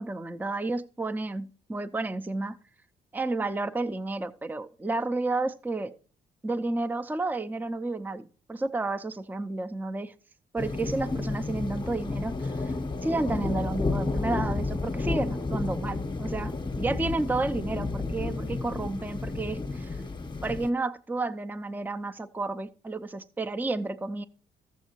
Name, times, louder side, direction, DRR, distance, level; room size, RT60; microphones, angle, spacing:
voice 1, 0.0-2.6 3.1-5.9 6.4-10.1 10.5-12.7 13.0-20.0 20.4-24.2, right 2 dB, 10° right, 9 dB, 0.5 m, -31 dB
sound 1, 10.6-20.7, left 3 dB, 25° left, 0.9 m, -31 dB
13.0 x 7.3 x 2.9 m, 0.42 s
supercardioid pair, 55°, 20 cm